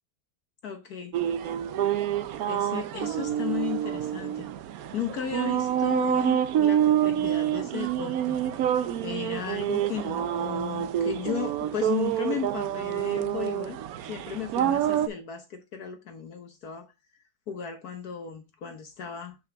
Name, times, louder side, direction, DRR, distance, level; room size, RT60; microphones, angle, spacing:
voice 1, 0.6-1.1 2.5-4.5 4.9-8.4 9.0-16.9 17.5-19.4, left 8 dB, 55° left, 1.3 m, -35 dB
sound 1, 1.1-15.1, right 10 dB, 75° right, 0.8 m, -27 dB
6.0 x 5.8 x 3.3 m
omnidirectional pair, 2.2 m